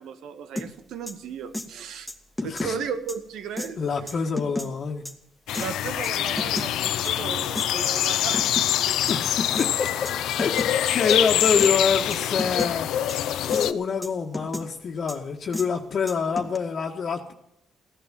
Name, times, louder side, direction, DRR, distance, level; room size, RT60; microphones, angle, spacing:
voice 1, 0.0-2.1 2.4-4.1 5.6-9.0, right 6 dB, 80° right, 10 dB, 1.7 m, -35 dB
sound 1, 0.6-0.7 1.1-1.2 1.5-1.7 2.1-2.7 3.1-3.2 3.6-3.7 4.1-4.7 5.0-5.1 5.5-5.7 6.0-6.7 7.0-7.1 7.5-7.7 8.0-8.7 9.1-9.2 9.5-9.7 10.1-10.2 10.4-10.7 11.1-11.2 11.6-11.7 12.1-12.7 13.1-13.2 13.5-13.7 14.0-14.7 15.1-15.2 15.5-15.7 16.1-16.6, left 1 dB, ahead, 2.1 m, -32 dB
voice 2, 2.5-2.8 3.8-5.1 9.1-10.1 10.4-12.9 13.1-17.3, left 5 dB, 50° left, 0 dB, 1.6 m, -26 dB
sound 2, 5.5-13.7, left 11 dB, 85° left, 0.8 m, -25 dB
16.0 x 11.0 x 7.5 m, 0.77 s
cardioid pair, 90°, 0 cm